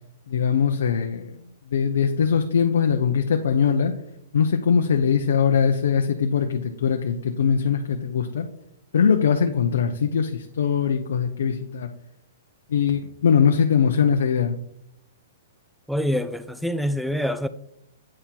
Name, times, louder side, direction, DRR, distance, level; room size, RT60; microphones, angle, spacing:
voice 1, 0.3-1.3 1.7-3.9 4.3-8.5 8.9-11.9 12.7-14.6, left 7 dB, 80° left, 0.6 m, -21 dB
voice 2, 15.9-17.5, equal, ahead, 0.3 m, -25 dB
8.6 x 3.7 x 4.5 m
hypercardioid pair, 140°, 0 cm